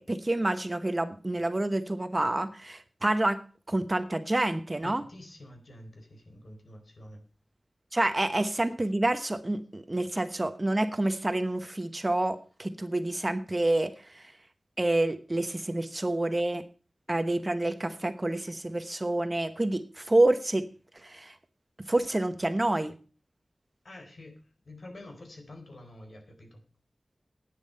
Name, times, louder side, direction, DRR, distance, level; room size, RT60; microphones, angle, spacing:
voice 1, 0.0-3.4 3.7-5.0 7.9-14.2 14.8-16.6 17.1-20.7 21.0-21.3 21.9-23.0, right 1 dB, 25° right, 10 dB, 1.0 m, -28 dB
voice 2, 4.8-7.2 23.8-24.3 24.6-26.6, left 1 dB, 60° left, 4 dB, 4.1 m, -47 dB
11.5 x 9.5 x 5.6 m, 0.37 s
wide cardioid pair, 90°, 0 cm